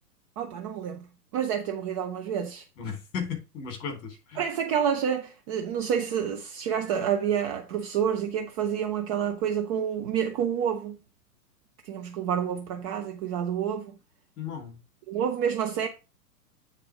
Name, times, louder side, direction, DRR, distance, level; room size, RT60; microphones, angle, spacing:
voice 1, 0.4-1.1 1.3-2.6 4.4-11.0 11.8-13.9 15.1-15.9, right 8 dB, 20° right, 0.6 m, -28 dB
voice 2, 2.8-4.4 14.4-14.8, left 6 dB, 30° left, 3.8 m, -35 dB
8.6 x 4.1 x 4.9 m
figure-of-eight pair, 115°, 47 cm